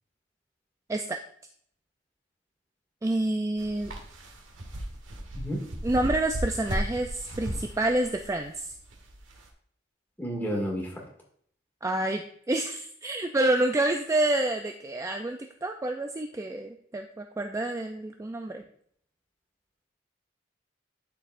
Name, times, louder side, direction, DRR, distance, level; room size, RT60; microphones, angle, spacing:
voice 1, 3.0-3.9 5.8-8.7 11.8-18.6, right 1 dB, 15° right, 4 dB, 0.3 m, -28 dB
sound 1, 3.6-9.5, right 1 dB, 85° right, 1.4 m, -36 dB
voice 2, 10.2-11.0, equal, 10° left, -2 dB, 2.0 m, -31 dB
12.5 x 4.5 x 2.5 m, 0.63 s
head